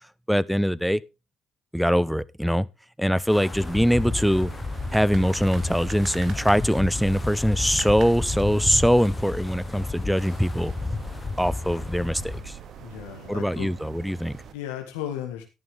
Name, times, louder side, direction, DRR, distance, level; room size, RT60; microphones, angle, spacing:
voice 1, 0.3-1.0 1.7-2.7 3.0-4.5 4.9-10.7 11.4-12.6 13.3-14.3, equal, ahead, 0.7 m, -22 dB
Wind, 3.3-12.4, left 3 dB, 25° left, 1.1 m, -32 dB
sound 1, 3.6-14.5, right 6 dB, 55° right, 2.1 m, -42 dB
voice 2, 12.8-13.7 14.5-15.4, left 10 dB, 80° left, 1.8 m, -35 dB
12.5 x 11.0 x 3.4 m
hypercardioid pair, 60°, 0 cm